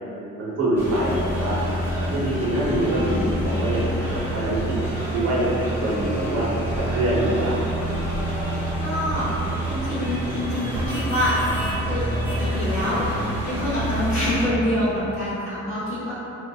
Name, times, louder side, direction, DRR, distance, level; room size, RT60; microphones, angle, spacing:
voice 1, 0.1-1.6 2.1-4.6 5.1-6.5 6.7-7.6, right 1 dB, 55° right, -7 dB, 0.9 m, -24 dB
sound 1, 0.8-14.5, right 1 dB, 10° right, 1.0 m, -27 dB
voice 2, 8.8-9.4 9.6-11.3 11.8-16.1, left 1 dB, 45° left, -10 dB, 0.7 m, -26 dB
2.7 x 2.4 x 2.3 m, 2.8 s
cardioid pair, 90°, 30 cm